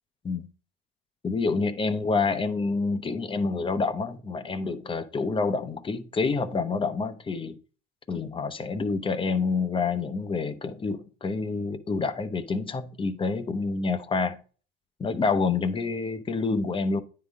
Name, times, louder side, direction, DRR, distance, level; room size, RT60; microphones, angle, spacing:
voice 1, 1.2-7.6 8.1-14.4 15.0-17.0, left 4 dB, 15° left, 0.7 m, -28 dB
9.4 x 3.8 x 3.6 m
supercardioid pair, 105°, 31 cm